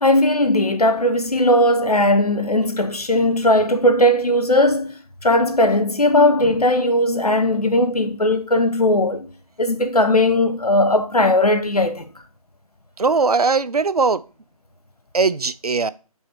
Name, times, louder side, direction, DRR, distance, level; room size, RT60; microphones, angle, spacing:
voice 1, 0.0-9.3 9.6-12.1, left 1 dB, 75° left, 1.2 m, -18 dB
voice 2, 13.0-14.2 15.1-15.9, right 4 dB, 75° right, 0.5 m, -19 dB
5.5 x 4.3 x 6.1 m
figure-of-eight pair, 160°, 19 cm